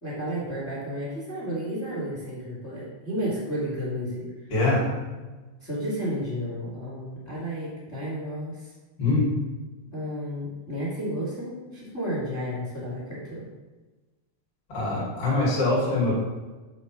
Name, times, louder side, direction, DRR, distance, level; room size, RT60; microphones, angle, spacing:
voice 1, 0.0-4.3 5.2-5.3 5.6-8.7 9.9-13.5, equal, 25° left, -8 dB, 1.6 m, -32 dB
voice 2, 4.5-4.8 9.0-9.2 14.7-16.1, left 2 dB, 40° left, -6 dB, 2.6 m, -23 dB
7.6 x 3.4 x 5.9 m, 1.2 s
omnidirectional pair, 5.1 m